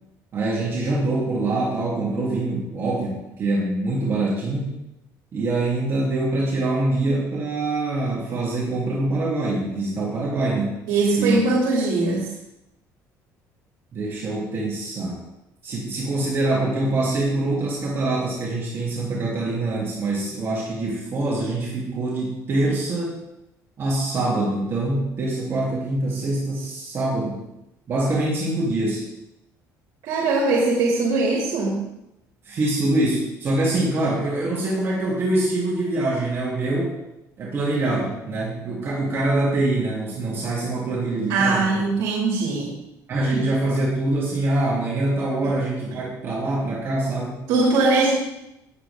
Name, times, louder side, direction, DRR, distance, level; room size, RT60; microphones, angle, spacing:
voice 1, 0.3-4.7 5.3-10.7 11.2-11.4 13.9-15.2 15.6-23.2 23.8-27.4 27.9-29.0 32.4-36.9 37.4-41.8 43.1-47.4, right 2 dB, 35° right, -5 dB, 3.3 m, -24 dB
voice 2, 10.9-12.3 30.0-31.8 41.3-42.7 43.3-43.4 47.5-48.1, right 3 dB, 80° right, -2 dB, 2.8 m, -21 dB
18.0 x 8.1 x 3.8 m, 0.91 s
cardioid pair, 145°, 7 cm